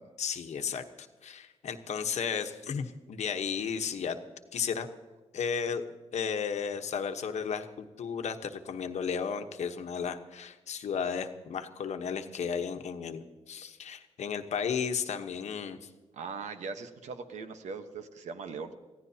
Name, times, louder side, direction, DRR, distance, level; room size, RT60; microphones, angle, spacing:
voice 1, 0.2-4.2 4.5-4.9 5.3-5.8 6.1-15.9, left 6 dB, 75° left, 7 dB, 1.1 m, -34 dB
voice 2, 16.1-18.7, right 5 dB, 90° right, 8 dB, 1.2 m, -40 dB
25.0 x 15.5 x 2.8 m, 1.3 s
cardioid pair, 90°, 12 cm